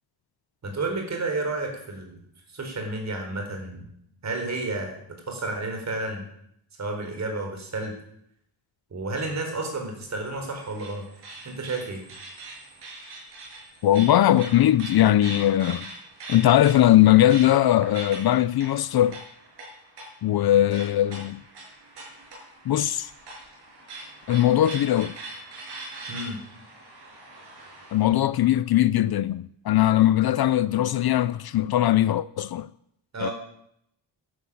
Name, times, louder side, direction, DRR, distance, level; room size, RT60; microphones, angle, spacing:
voice 1, 0.6-2.2 2.5-3.9 4.2-5.0 5.3-6.2 6.8-8.0 8.9-11.0 11.4-12.0 26.1-26.4 33.1-33.3, right 2 dB, 40° right, 4.4 m, -31 dB
sound 1, 10.0-28.2, right 2 dB, 65° right, 6.8 m, -42 dB
voice 2, 13.8-15.9 16.3-19.2 20.2-21.4 22.7-23.1 24.3-25.2 27.9-32.7 33.2-33.3, left 13 dB, 60° left, 0.6 m, -20 dB
12.0 x 11.0 x 8.6 m
wide cardioid pair, 140°, 43 cm